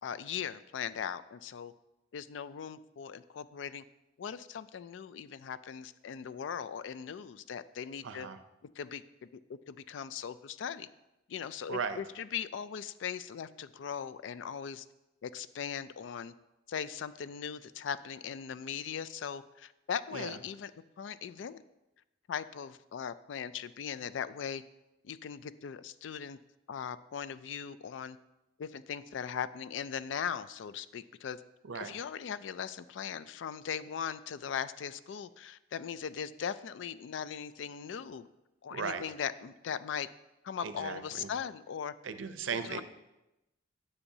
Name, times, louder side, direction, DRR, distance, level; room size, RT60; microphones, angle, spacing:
voice 1, 0.0-1.7 2.1-3.8 4.2-8.3 8.8-9.3 9.7-10.9 11.3-14.9 15.2-16.3 16.7-20.7 21.0-21.6 22.3-24.6 25.0-26.4 26.7-28.2 28.6-31.4 31.7-38.3 38.6-40.1 40.4-41.9 42.5-42.8, left 7 dB, 70° left, 14 dB, 0.3 m, -39 dB
voice 2, 8.0-8.4 11.7-12.0 20.1-20.4 31.6-32.0 38.7-39.0 40.6-41.3 42.0-42.8, right 5 dB, 80° right, 10 dB, 0.6 m, -37 dB
9.8 x 6.9 x 2.7 m, 0.94 s
head